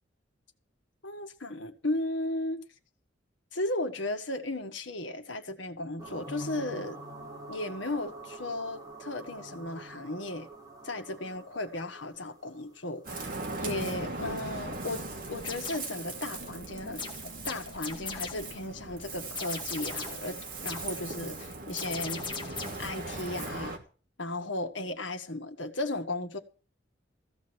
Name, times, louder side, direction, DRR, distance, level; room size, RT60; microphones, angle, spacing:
voice 1, 1.0-2.6 3.5-7.0 7.5-10.5 10.8-13.3 13.6-17.0 17.4-20.4 20.6-22.2 22.5-23.8 24.2-26.4, left 2 dB, 70° left, 1.7 m, -35 dB
sound 1, 6.0-13.6, right 1 dB, 20° right, 3.8 m, -46 dB
Ocean, 13.0-23.8, right 2 dB, 50° right, 2.7 m, -39 dB
sound 2, 15.4-16.0 17.0-18.6 19.3-20.3 20.7-21.0 21.8-22.9, left 5 dB, 25° left, 2.2 m, -39 dB
15.5 x 5.3 x 8.1 m
head